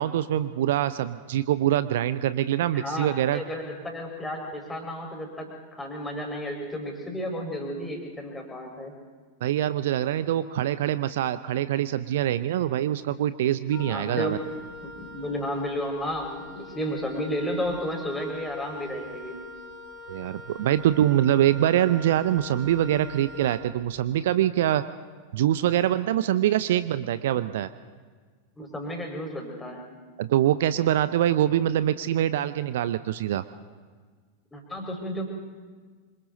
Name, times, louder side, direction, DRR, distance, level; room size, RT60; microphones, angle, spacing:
voice 1, 0.0-3.4 9.4-14.4 20.1-24.8 25.3-27.7 30.2-33.4, right 12 dB, 55° right, 14 dB, 0.7 m, -24 dB
voice 2, 2.7-8.9 13.9-14.5 14.8-19.4 28.6-29.8 34.5-35.3, equal, 10° left, 1 dB, 5.2 m, -32 dB
Wind instrument woodwind instrument, 13.7-24.1, left 2 dB, 35° left, 3.0 m, -43 dB
26.5 x 26.5 x 4.0 m, 1.5 s
figure-of-eight pair, 90°, 0 cm